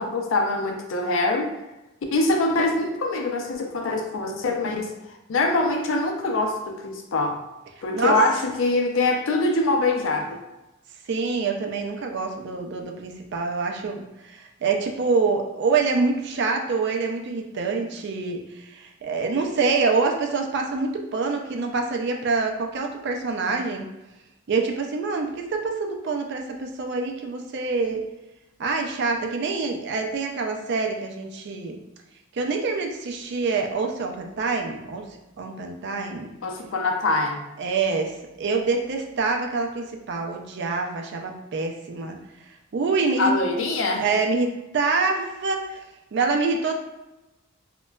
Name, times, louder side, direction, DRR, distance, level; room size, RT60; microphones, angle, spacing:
voice 1, 0.0-1.5 2.1-7.4 7.8-10.4 36.4-37.4 43.2-44.0, left 2 dB, 70° left, 3 dB, 0.4 m, -24 dB
voice 2, 11.1-23.9 24.5-28.0 28.6-31.8 32.3-35.0 35.4-36.3 37.6-38.1 38.4-42.2 42.7-43.3 43.9-45.8 46.1-46.8, right 4 dB, 55° right, 3 dB, 0.4 m, -26 dB
3.9 x 2.2 x 2.2 m, 0.99 s
head